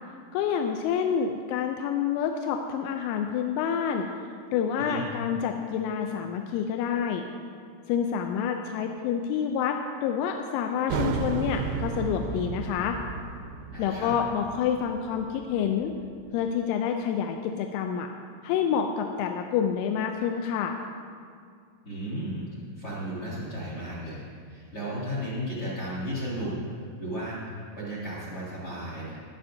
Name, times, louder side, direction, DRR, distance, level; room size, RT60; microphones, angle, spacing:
voice 1, 0.3-4.1 4.5-7.2 7.9-13.0 13.8-15.9 16.3-18.1 18.4-20.8, left 8 dB, 85° left, 4 dB, 3.0 m, -28 dB
sound 1, 10.9-16.2, right 5 dB, 85° right, 2.7 m, -33 dB
voice 2, 13.7-14.1 21.8-22.4 22.8-29.2, equal, 40° left, -8 dB, 2.0 m, -34 dB
15.0 x 11.0 x 2.7 m, 2.2 s
omnidirectional pair, 5.4 m